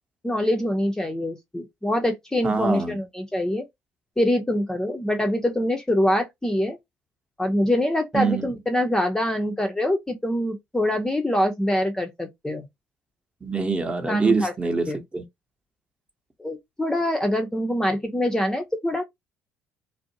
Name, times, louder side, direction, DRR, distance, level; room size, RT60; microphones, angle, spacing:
voice 1, 0.2-3.7 4.2-6.8 7.4-12.6 14.1-14.5 14.9-15.0 16.4-19.0, left 1 dB, 10° left, 0.6 m, -24 dB
voice 2, 2.4-3.0 8.1-8.5 13.4-14.9 15.1-15.2, right 4 dB, 20° right, 0.9 m, -24 dB
2.5 x 2.1 x 2.7 m
hypercardioid pair, 55°, 5 cm